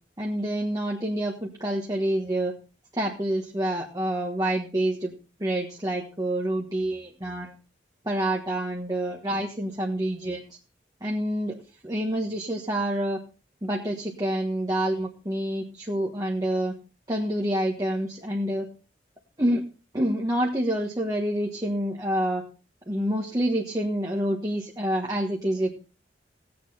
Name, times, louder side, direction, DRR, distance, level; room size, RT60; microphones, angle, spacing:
voice 1, 0.2-2.5 2.9-5.1 5.4-7.5 8.0-10.6 11.0-13.2 13.6-16.7 17.1-18.7 19.4-19.6 19.9-22.4 22.9-25.8, right 1 dB, 20° right, -1 dB, 1.4 m, -27 dB
16.5 x 8.8 x 4.2 m, 0.35 s
head